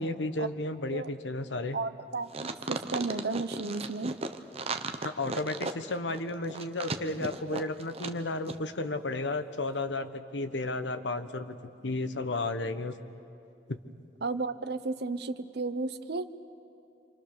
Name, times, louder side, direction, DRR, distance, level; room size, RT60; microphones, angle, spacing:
voice 1, 0.0-1.8 5.0-11.6 11.8-12.9 13.7-13.8, left 2 dB, 85° left, 10 dB, 1.2 m, -33 dB
voice 2, 1.7-4.2 14.2-16.3, right 3 dB, 65° right, 11 dB, 0.9 m, -33 dB
sound 1, 2.3-8.2 8.4-8.6, right 3 dB, 35° right, 1.0 m, -35 dB
27.5 x 27.0 x 6.7 m, 2.6 s
head